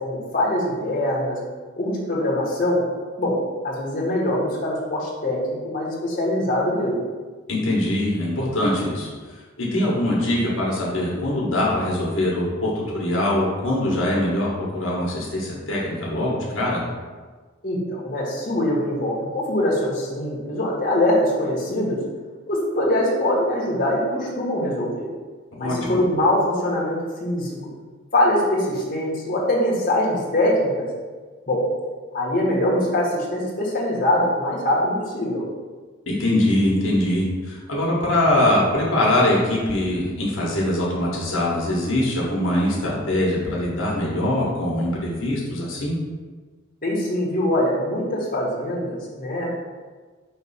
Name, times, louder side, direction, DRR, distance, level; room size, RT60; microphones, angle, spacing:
voice 1, 0.0-1.4 1.8-2.8 3.2-3.4 3.6-7.0 17.6-22.0 22.5-25.1 25.6-27.5 28.1-30.9 31.5-31.6 32.1-35.4 46.8-49.5, left 1 dB, 40° left, -5 dB, 1.4 m, -23 dB
voice 2, 7.5-16.8 25.5-26.0 36.1-45.9, left 1 dB, 70° left, -4 dB, 1.3 m, -22 dB
5.3 x 3.2 x 5.5 m, 1.4 s
head